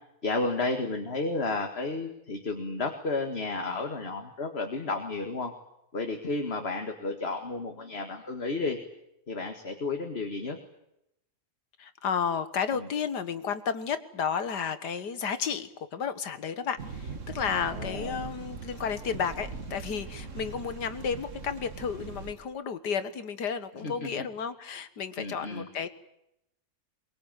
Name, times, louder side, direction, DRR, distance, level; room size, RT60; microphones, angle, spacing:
voice 1, 0.2-5.5 5.9-8.8 9.3-10.6 12.7-12.9 17.7-18.2 23.8-24.3 25.2-25.7, left 3 dB, 40° left, 4 dB, 2.1 m, -32 dB
voice 2, 11.8-25.9, left 6 dB, 80° left, 11 dB, 2.0 m, -32 dB
sound 1, 16.8-22.4, right 5 dB, 50° right, 1.9 m, -40 dB
23.5 x 22.0 x 9.1 m, 0.82 s
omnidirectional pair, 1.7 m